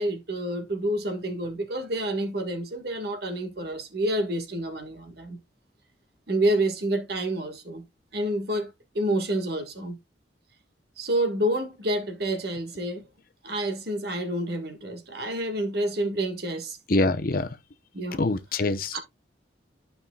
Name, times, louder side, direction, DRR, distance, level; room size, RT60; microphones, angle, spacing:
voice 1, 0.0-5.4 6.3-7.8 8.1-10.0 11.0-13.1 13.4-16.8 17.9-18.2 18.9-19.0, right 1 dB, 60° right, 1.6 m, -28 dB
voice 2, 16.9-17.6 18.2-19.0, left 2 dB, 50° left, 0.8 m, -25 dB
12.5 x 5.5 x 2.3 m
head